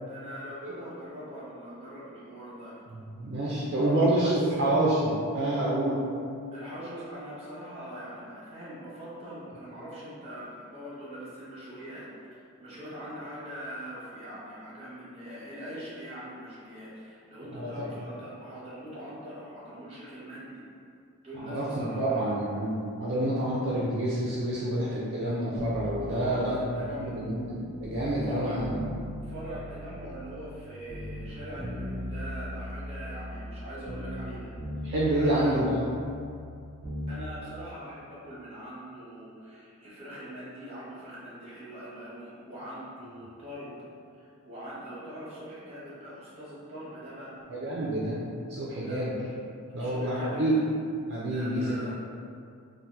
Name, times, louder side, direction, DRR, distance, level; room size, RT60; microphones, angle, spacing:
voice 1, 0.1-2.7 3.8-4.8 6.5-20.6 21.2-22.4 23.2-23.3 26.1-27.2 28.2-28.6 29.2-34.5 35.1-35.6 37.1-43.7 44.2-47.3 48.8-49.0 49.8-50.6 51.2-51.9, equal, 25° right, -8 dB, 0.8 m, -42 dB
voice 2, 2.9-6.0 17.5-18.0 21.3-26.6 26.8-28.8 34.8-35.8 47.5-48.2 48.5-49.2 49.7-50.6 51.1-51.9, right 1 dB, 50° right, -7 dB, 0.4 m, -28 dB
sound 1, 25.6-28.3 28.6-30.6 30.9-34.3 34.6-37.2 37.5-37.6, left 1 dB, 55° left, 1.2 m, -39 dB
2.8 x 2.1 x 3.3 m, 2.4 s
head